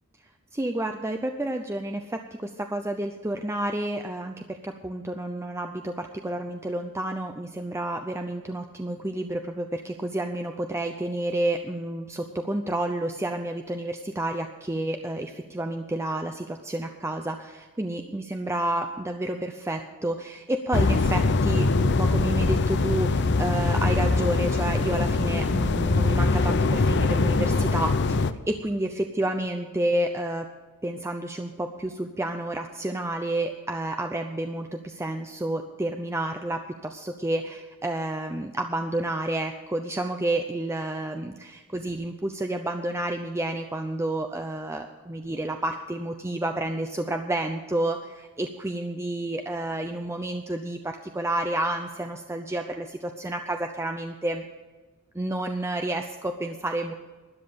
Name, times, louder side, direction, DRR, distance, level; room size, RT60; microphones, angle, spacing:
voice 1, 0.5-28.2 28.5-30.5 30.8-54.4 55.1-56.9, right 1 dB, 10° right, 5 dB, 0.6 m, -30 dB
sound 1, 20.7-28.3, left 3 dB, 50° left, 0.7 m, -23 dB
12.5 x 10.0 x 6.8 m, 1.3 s
head